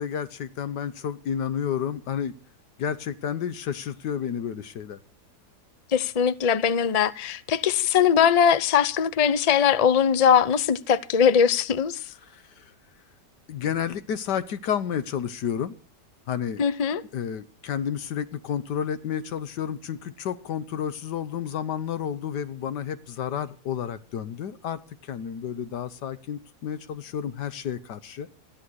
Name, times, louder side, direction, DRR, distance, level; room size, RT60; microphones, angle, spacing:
voice 1, 0.0-2.3 2.8-5.0 12.2-12.7 13.5-15.7 16.3-16.6 17.1-28.3, left 8 dB, 75° left, 1.5 m, -31 dB
voice 2, 5.9-12.0 16.6-17.0, left 7 dB, 60° left, 0.4 m, -21 dB
14.5 x 11.0 x 6.3 m
omnidirectional pair, 1.8 m